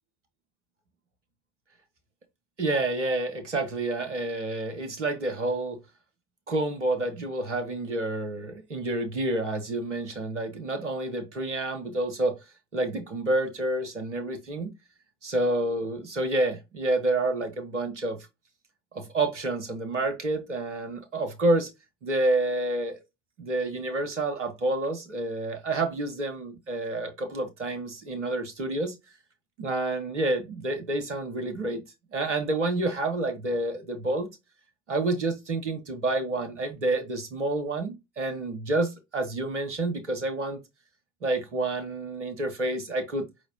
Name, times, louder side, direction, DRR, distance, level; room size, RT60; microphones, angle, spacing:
voice 1, 2.6-5.8 6.5-12.4 12.7-14.7 15.2-18.2 18.9-21.7 22.0-23.0 23.4-28.9 29.6-31.8 32.1-34.3 34.9-40.6 41.2-43.3, right 2 dB, 90° right, 0.8 m, -29 dB
4.8 x 3.0 x 2.7 m
figure-of-eight pair, 50°, 35 cm